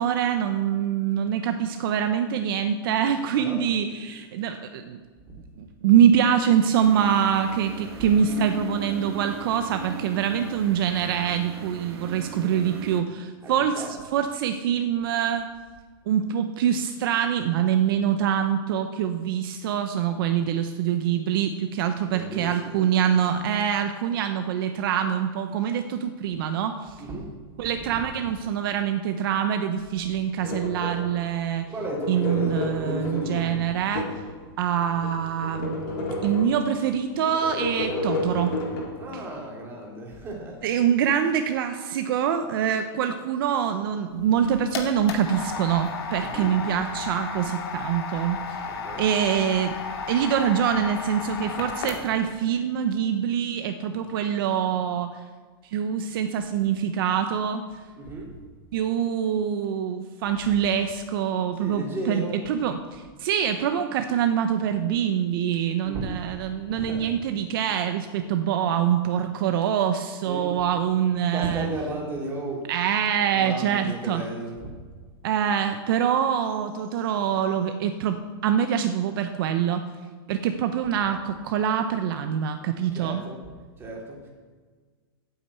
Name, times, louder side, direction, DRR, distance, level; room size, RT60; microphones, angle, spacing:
voice 1, 0.0-5.0 5.6-15.5 16.1-27.0 27.6-31.7 32.1-34.1 34.6-38.6 39.1-39.2 40.6-48.7 49.0-49.7 50.1-55.2 55.6-57.6 58.7-71.7 72.7-74.2 75.2-79.8 80.3-83.2, right 9 dB, 60° right, 7 dB, 0.9 m, -25 dB
voice 2, 3.3-3.7 8.0-8.1 13.4-14.1 22.1-22.9 27.0-27.3 27.6-28.1 31.7-33.6 39.0-40.7 46.2-46.6 48.7-49.1 58.0-58.3 60.4-60.6 61.6-62.4 65.8-66.2 66.7-67.2 70.3-70.7 71.3-72.7 73.3-74.7 82.9-83.4 83.8-84.3, right 2 dB, 15° right, -1 dB, 2.8 m, -35 dB
sound 1, 6.7-13.0, right 6 dB, 75° right, 1.6 m, -38 dB
sound 2, 30.4-31.2 31.7-34.3 34.8-36.7 37.3-38.9, left 2 dB, 60° left, 4.2 m, -31 dB
sound 3, 44.2-52.3, left 5 dB, 80° left, 2.3 m, -34 dB
8.9 x 8.8 x 8.2 m, 1.5 s
supercardioid pair, 150°, 13 cm